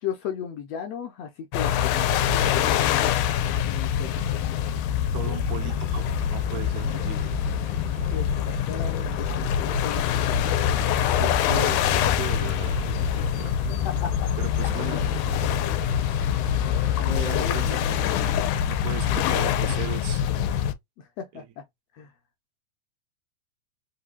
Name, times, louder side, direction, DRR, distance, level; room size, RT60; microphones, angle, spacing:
voice 1, 0.0-2.2 3.6-4.4 8.1-10.6 13.4-14.3 17.0-17.9 19.0-19.3 21.0-21.6 21.9-22.1, left 8 dB, 75° left, 1.6 m, -36 dB
sound 1, 1.5-20.7, left 9 dB, 90° left, 2.0 m, -24 dB
voice 2, 5.1-7.4 11.2-13.6 14.4-15.1 17.0-18.1 18.7-20.2 21.4-21.5, right 10 dB, 80° right, 2.1 m, -37 dB
sound 2, 5.5-19.6, right 4 dB, 50° right, 1.1 m, -47 dB
4.9 x 2.6 x 2.2 m
omnidirectional pair, 3.4 m